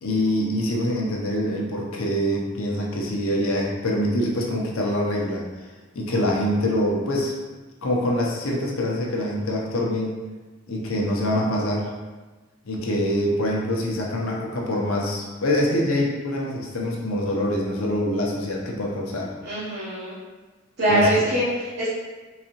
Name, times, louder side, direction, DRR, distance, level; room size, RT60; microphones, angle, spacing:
voice 1, 0.0-5.4 5.9-7.3 7.8-10.1 10.7-11.9 12.6-19.3 20.9-21.3, left 1 dB, 80° left, -2 dB, 0.7 m, -25 dB
voice 2, 19.4-20.1 20.8-21.9, right 1 dB, 55° right, -10 dB, 0.8 m, -23 dB
3.9 x 2.7 x 2.9 m, 1.2 s
head